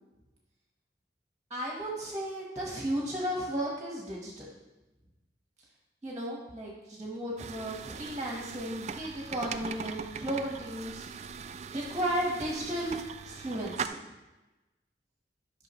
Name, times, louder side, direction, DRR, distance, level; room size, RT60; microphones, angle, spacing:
voice 1, 1.5-4.5 6.0-11.0 11.7-12.9 13.2-14.0, right 1 dB, 20° right, -3 dB, 1.3 m, -34 dB
sound 1, 7.4-13.9, right 6 dB, 35° right, 0.3 m, -40 dB
11.5 x 5.9 x 3.1 m, 1.1 s
head